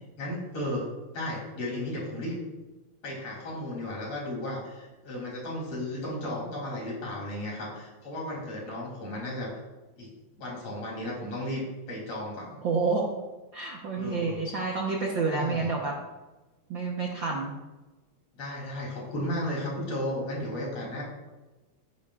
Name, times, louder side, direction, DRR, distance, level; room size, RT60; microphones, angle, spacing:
voice 1, 0.2-0.9 1.1-2.4 3.0-9.5 10.0-10.1 10.4-12.6 14.0-14.4 15.3-15.7 18.4-21.0, left 1 dB, 55° left, -2 dB, 4.5 m, -34 dB
voice 2, 12.6-13.1 13.5-15.9 16.7-17.5, right 4 dB, 60° right, -1 dB, 1.4 m, -29 dB
14.5 x 10.5 x 2.5 m, 1.1 s
omnidirectional pair, 3.4 m